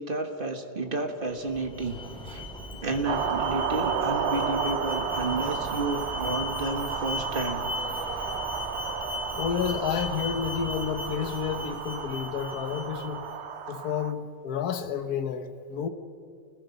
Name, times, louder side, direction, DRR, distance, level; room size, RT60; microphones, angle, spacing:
voice 1, 0.0-2.4 2.8-7.7, right 2 dB, 30° right, 5 dB, 1.7 m, -31 dB
Alarm, 1.3-13.3, left 2 dB, 5° left, 3.2 m, -37 dB
sound 1, 3.0-14.1, right 7 dB, 50° right, 0.9 m, -32 dB
voice 2, 9.4-13.3 13.7-15.9, left 7 dB, 55° left, 9 dB, 1.6 m, -30 dB
29.0 x 20.5 x 5.4 m, 2.3 s
omnidirectional pair, 2.0 m